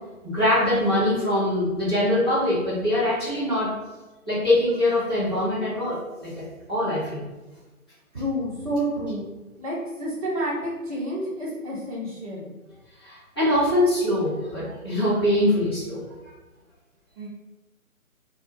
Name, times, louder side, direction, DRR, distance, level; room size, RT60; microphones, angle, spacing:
voice 1, 0.2-3.7 4.3-6.4 6.7-7.3 13.0-16.0, left 1 dB, 20° left, -11 dB, 0.7 m, -23 dB
voice 2, 8.1-9.3 9.6-12.5 17.2-17.3, equal, 25° right, -9 dB, 0.8 m, -29 dB
2.3 x 2.1 x 3.3 m, 1.1 s
figure-of-eight pair, 150°, 43 cm